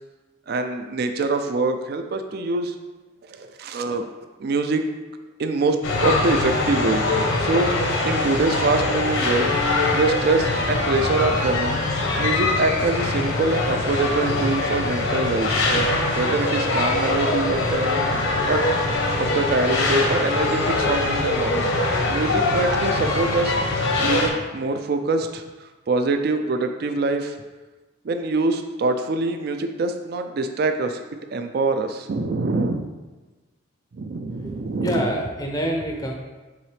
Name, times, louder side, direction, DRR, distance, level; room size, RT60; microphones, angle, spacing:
voice 1, 0.5-2.8 3.3-4.1 4.4-4.9 5.4-9.5 9.9-11.9 12.2-15.9 16.2-18.1 18.5-18.6 19.2-21.7 22.1-23.6 24.0-27.4 28.0-31.0 31.3-32.8 33.9-35.1, right 3 dB, 50° right, 7 dB, 0.4 m, -24 dB
sound 1, 5.8-24.3, left 2 dB, 80° left, 1.0 m, -23 dB
voice 2, 34.4-36.1, equal, 20° left, 1 dB, 0.5 m, -26 dB
7.2 x 4.0 x 3.3 m, 1.2 s
head